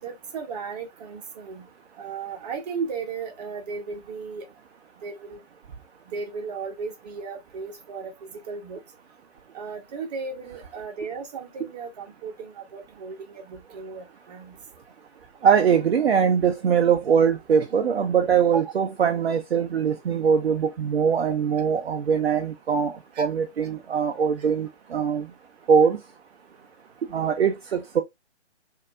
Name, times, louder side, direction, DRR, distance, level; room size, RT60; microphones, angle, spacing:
voice 1, 0.0-1.6 2.0-4.5 5.0-5.4 6.1-8.8 9.5-14.5 18.5-18.7 23.1-23.3 24.4-24.5, right 5 dB, 35° right, 1.0 m, -35 dB
voice 2, 15.4-25.3 25.7-26.0 27.1-28.0, right 7 dB, 60° right, 0.6 m, -22 dB
3.9 x 2.7 x 2.3 m
figure-of-eight pair, 130°, 34 cm